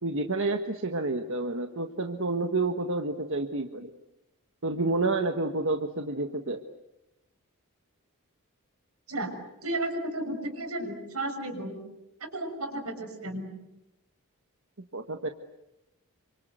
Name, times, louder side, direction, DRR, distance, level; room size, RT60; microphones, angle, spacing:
voice 1, 0.0-3.9 4.6-6.6 14.9-15.3, right 2 dB, 65° right, 5 dB, 1.5 m, -29 dB
voice 2, 9.1-11.8 12.2-13.5, right 1 dB, 85° right, 5 dB, 6.7 m, -33 dB
28.0 x 25.5 x 8.1 m, 0.93 s
head